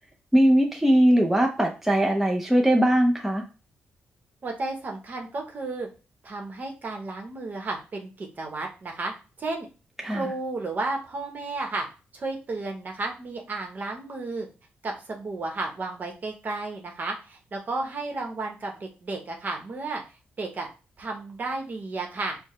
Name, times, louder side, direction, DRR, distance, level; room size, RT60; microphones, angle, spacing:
voice 1, 0.3-3.4 10.0-10.3, right 1 dB, 5° right, 1 dB, 0.5 m, -20 dB
voice 2, 4.4-5.9 6.2-9.1 9.4-9.7 10.1-11.9 12.1-14.5 14.8-20.0 20.4-20.7 21.0-22.4, right 3 dB, 45° right, 2 dB, 0.9 m, -33 dB
4.6 x 2.1 x 3.1 m, 0.33 s
cardioid pair, 90°, 4 cm